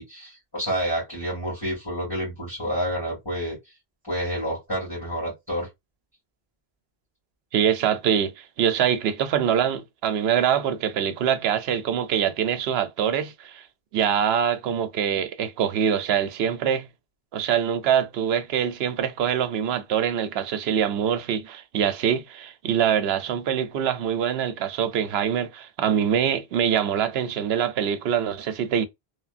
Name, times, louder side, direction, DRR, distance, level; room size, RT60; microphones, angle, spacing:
voice 1, 0.0-3.6 4.1-5.7, equal, 20° left, 2.0 m, -29 dB
voice 2, 7.5-13.6 13.9-16.9 17.3-28.9, right 8 dB, 75° right, 0.8 m, -24 dB
3.3 x 2.1 x 2.4 m
omnidirectional pair, 1.1 m